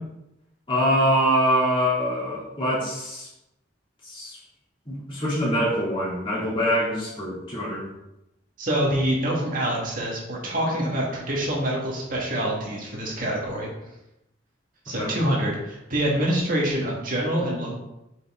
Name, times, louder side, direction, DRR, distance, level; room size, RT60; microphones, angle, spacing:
voice 1, 0.7-3.3 4.0-4.4 4.8-7.9 14.9-15.1, equal, 30° left, -7 dB, 3.1 m, -24 dB
voice 2, 8.6-13.7 14.9-17.7, right 1 dB, 45° right, -3 dB, 1.9 m, -26 dB
7.8 x 5.6 x 3.8 m, 0.90 s
head